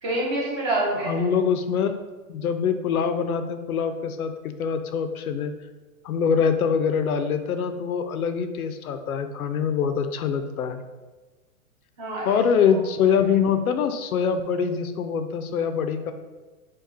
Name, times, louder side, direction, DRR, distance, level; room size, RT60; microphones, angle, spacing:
voice 1, 0.0-1.3 12.0-12.4, right 1 dB, 20° right, -5 dB, 0.8 m, -27 dB
voice 2, 1.0-1.9 2.3-5.5 6.0-10.8 12.2-16.1, left 7 dB, 80° left, 9 dB, 0.6 m, -24 dB
5.0 x 2.3 x 4.0 m, 1.2 s
hypercardioid pair, 160°, 43 cm